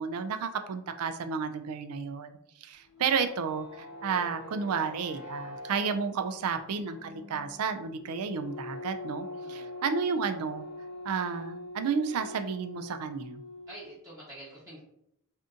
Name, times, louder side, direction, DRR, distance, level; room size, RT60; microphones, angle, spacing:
voice 1, 0.0-10.7 11.0-13.4, right 5 dB, 70° right, 8 dB, 0.4 m, -32 dB
sound 1, 2.7-14.0, left 1 dB, 75° left, 0.9 m, -44 dB
voice 2, 9.4-9.7 13.7-14.8, right 1 dB, 15° right, -9 dB, 0.8 m, -47 dB
2.6 x 2.5 x 3.6 m, 0.76 s
head